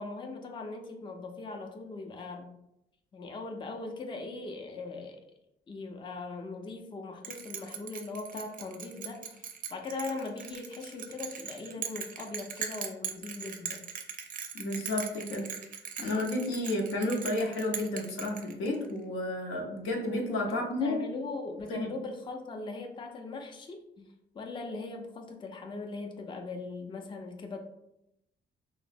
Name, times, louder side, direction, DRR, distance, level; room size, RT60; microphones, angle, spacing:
voice 1, 0.0-2.5 3.1-5.2 5.7-13.8 20.5-24.1 24.3-27.6, left 3 dB, 25° left, 3 dB, 0.4 m, -40 dB
Bell, 7.2-18.9, right 7 dB, 45° right, 0.4 m, -40 dB
voice 2, 14.5-15.5 16.0-21.0 21.7-21.9, left 1 dB, 85° left, 0 dB, 0.6 m, -31 dB
3.0 x 2.0 x 2.5 m, 0.83 s
cardioid pair, 90°, 20 cm